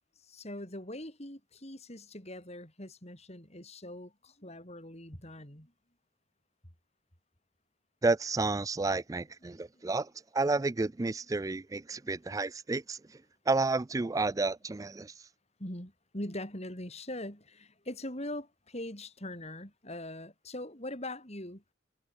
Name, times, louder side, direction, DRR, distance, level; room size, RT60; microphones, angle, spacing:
voice 1, 0.2-5.7 9.5-9.9 11.9-12.1 15.6-21.6, left 1 dB, 30° left, 6.7 m, -42 dB
voice 2, 8.0-13.0 13.5-15.1, right 3 dB, 15° right, 0.3 m, -31 dB
head